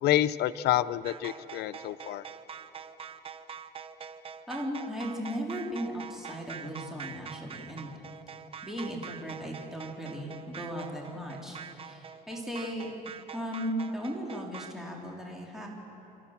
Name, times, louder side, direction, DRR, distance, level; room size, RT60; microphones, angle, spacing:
voice 1, 0.0-2.2, left 13 dB, 75° left, 15 dB, 0.6 m, -28 dB
sound 1, 1.0-14.7, right 7 dB, 35° right, 0.9 m, -45 dB
voice 2, 4.5-7.9 8.6-15.7, equal, ahead, -2 dB, 3.6 m, -37 dB
28.0 x 13.5 x 7.4 m, 3.0 s
cardioid pair, 110°, 17 cm